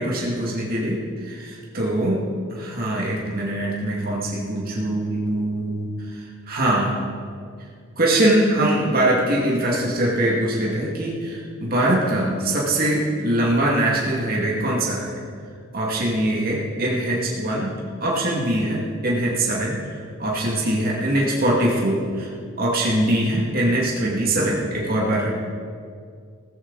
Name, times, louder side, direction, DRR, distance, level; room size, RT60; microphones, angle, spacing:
voice 1, 0.0-2.2 2.6-7.0 8.0-15.1 15.7-17.7 18.0-19.8 20.2-22.3 22.6-25.3, right 1 dB, 45° right, -4 dB, 2.3 m, -22 dB
16.0 x 13.5 x 4.1 m, 2.2 s
head